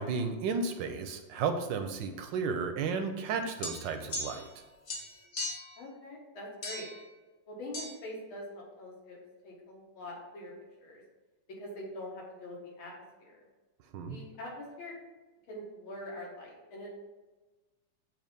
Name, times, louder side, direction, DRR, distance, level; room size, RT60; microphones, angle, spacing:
voice 1, 0.0-4.5 13.9-14.2, right 5 dB, 75° right, 7 dB, 1.1 m, -33 dB
sound 1, 3.6-4.6 4.9-5.8 6.6-7.0 7.7-7.9, left 1 dB, 50° left, 0.7 m, -38 dB
voice 2, 5.8-6.9 7.5-9.2 9.4-10.5 10.8-11.0 11.6-12.9 13.2-13.4 14.1-14.9 15.5-16.9, left 1 dB, 90° left, -3 dB, 2.3 m, -44 dB
7.5 x 2.8 x 5.1 m, 1.2 s
omnidirectional pair, 2.2 m